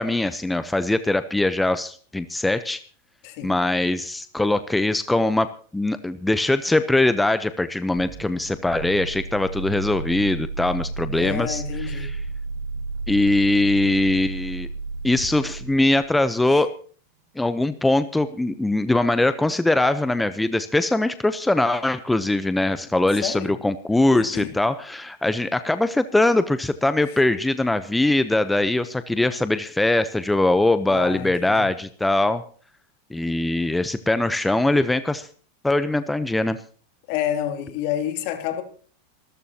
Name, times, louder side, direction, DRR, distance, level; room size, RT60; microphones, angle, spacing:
voice 1, 0.0-2.8 3.4-12.2 13.1-14.7 15.0-16.7 17.4-32.4 33.1-35.3 35.6-36.6, left 2 dB, 5° left, 0.8 m, -22 dB
voice 2, 3.2-3.5 11.1-12.1 16.5-16.6 23.2-23.5 24.1-24.5 30.9-31.7 37.1-38.6, left 11 dB, 60° left, 2.9 m, -29 dB
sound 1, 8.0-16.2, right 3 dB, 75° right, 2.2 m, -32 dB
26.5 x 13.5 x 2.9 m
hypercardioid pair, 110°, 0 cm